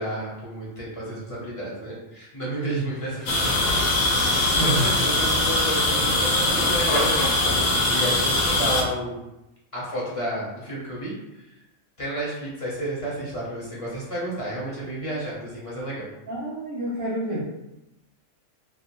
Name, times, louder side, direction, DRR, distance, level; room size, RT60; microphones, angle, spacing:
voice 1, 0.0-3.7 4.2-9.2 9.7-11.5 12.0-16.1, right 1 dB, 35° left, -7 dB, 0.6 m, -31 dB
sound 1, 3.3-8.8, left 2 dB, 80° left, 0.4 m, -22 dB
voice 2, 4.5-4.9 16.3-17.5, right 1 dB, 60° right, -5 dB, 0.6 m, -28 dB
2.5 x 2.1 x 2.9 m, 0.92 s
omnidirectional pair, 1.3 m